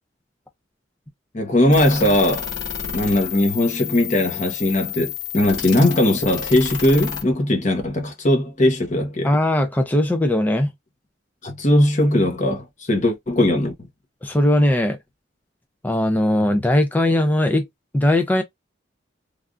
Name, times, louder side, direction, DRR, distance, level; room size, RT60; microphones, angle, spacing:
voice 1, 1.3-2.5 2.9-9.3 11.4-13.7, left 1 dB, 40° left, 0.9 m, -19 dB
sound 1, 1.7-7.2, left 9 dB, 70° left, 1.2 m, -30 dB
voice 2, 9.2-10.7 14.2-15.0 15.8-17.7 17.9-18.4, left 1 dB, 10° left, 0.4 m, -19 dB
3.3 x 2.4 x 2.3 m
head